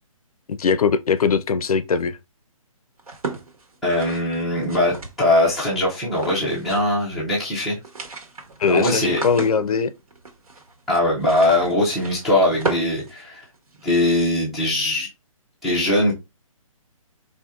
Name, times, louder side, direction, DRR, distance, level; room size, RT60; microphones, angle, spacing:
voice 1, 0.5-2.2 8.6-9.9, left 5 dB, 85° left, 0.5 m, -20 dB
sound 1, 3.0-5.5 6.1-7.0 7.3-7.4 7.7-13.8, right 3 dB, 85° right, 1.4 m, -34 dB
voice 2, 3.8-7.8 8.7-9.2 10.9-13.4 13.8-15.1 15.6-16.1, left 1 dB, ahead, 0.3 m, -21 dB
4.3 x 2.7 x 2.4 m
hypercardioid pair, 160°, 18 cm